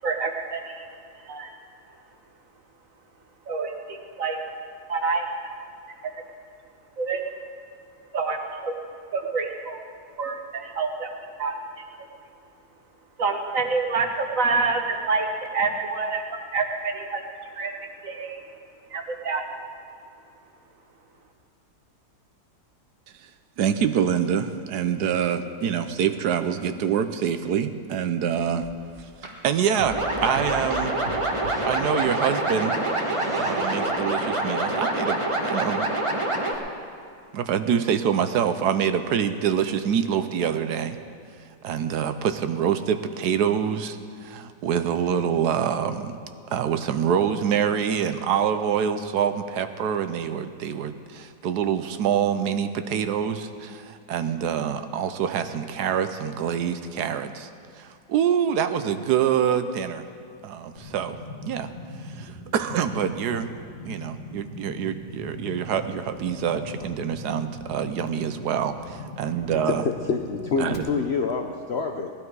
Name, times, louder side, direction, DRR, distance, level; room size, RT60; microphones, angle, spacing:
voice 1, 0.0-0.9 1.2-1.5 3.5-4.4 4.9-5.3 7.0-7.2 8.1-8.7 9.1-9.8 10.2-11.1 11.4-11.5 13.2-16.2 16.5-17.2 17.5-17.7 18.0-18.4 18.9-19.4, right 4 dB, 55° right, 3 dB, 1.6 m, -27 dB
voice 2, 23.6-28.7 29.4-30.9 31.6-32.8 33.3-35.9 37.3-41.0 41.6-46.2 46.5-57.5 57.8-60.0 60.4-61.2 61.4-61.7 62.0-63.5 63.8-69.8 70.6-70.9, right 8 dB, 75° right, 9 dB, 1.2 m, -26 dB
sound 1, 28.6-33.9, right 3 dB, 35° right, 1.6 m, -38 dB
sound 2, 29.9-36.5, right 2 dB, 20° right, 1.1 m, -26 dB
sound 3, 60.8-70.8, left 1 dB, 40° left, 1.6 m, -40 dB
voice 3, 69.6-72.1, left 5 dB, 60° left, 3 dB, 0.7 m, -27 dB
18.5 x 12.0 x 4.7 m, 2.5 s
omnidirectional pair, 1.8 m